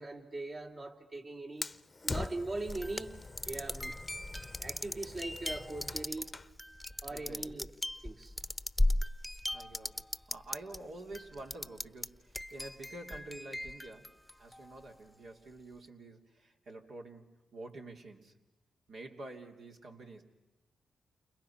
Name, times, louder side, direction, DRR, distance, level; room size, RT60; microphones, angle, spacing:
voice 1, 0.0-1.7 2.0-3.1 3.5-4.0 4.6-6.3 7.0-7.7 8.0-8.3, right 2 dB, 50° right, 2 dB, 3.3 m, -40 dB
Fire, 1.6-6.6, left 3 dB, 35° left, 0.8 m, -43 dB
sound 1, 2.7-10.8 11.1-12.1 12.3-14.7, left 1 dB, 5° left, 0.9 m, -37 dB
voice 2, 7.1-7.5 9.5-18.4 18.9-20.2, right 2 dB, 75° right, 1 dB, 2.8 m, -48 dB
29.5 x 28.0 x 5.8 m, 1.0 s
supercardioid pair, 55°, 0 cm